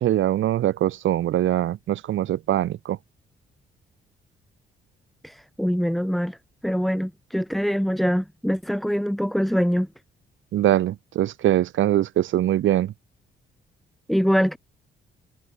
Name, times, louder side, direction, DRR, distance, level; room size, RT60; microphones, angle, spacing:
voice 1, 0.0-3.0 10.5-12.9, right 12 dB, 75° right, 2.8 m, -22 dB
voice 2, 5.2-6.4 6.6-9.9 14.1-14.6, equal, ahead, 2.3 m, -23 dB
cardioid pair, 90°, 20 cm